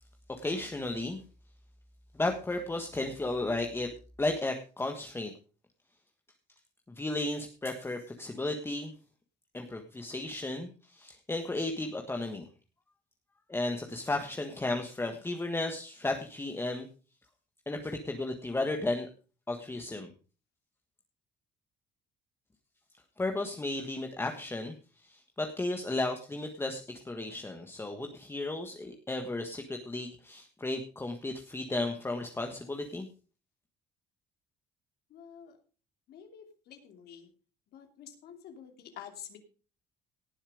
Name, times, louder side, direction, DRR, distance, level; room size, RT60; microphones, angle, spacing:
voice 1, 0.3-1.2 2.1-3.9 4.2-5.3 6.9-8.9 9.5-12.5 13.5-16.9 17.7-19.1 19.5-20.1 23.2-33.1, left 2 dB, 15° left, 4 dB, 1.5 m, -34 dB
voice 2, 35.1-35.5 36.1-37.3 37.7-39.4, left 8 dB, 70° left, 5 dB, 2.9 m, -48 dB
18.0 x 7.2 x 5.0 m, 0.37 s
cardioid pair, 110°, 17 cm